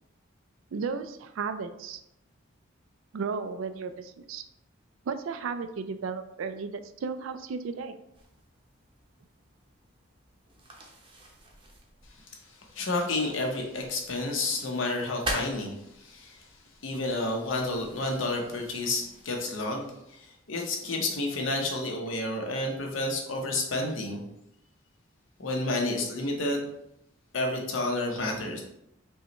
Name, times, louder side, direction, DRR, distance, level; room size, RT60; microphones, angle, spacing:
voice 1, 0.7-2.0 3.1-4.4 5.1-7.9, right 5 dB, 80° right, 10 dB, 0.4 m, -34 dB
sound 1, 8.1-20.0, right 1 dB, 25° right, 0.6 m, -44 dB
voice 2, 12.7-16.5 16.8-24.2 25.4-26.7 27.3-28.6, left 2 dB, 75° left, 1 dB, 0.8 m, -30 dB
5.3 x 2.2 x 2.9 m, 0.81 s
head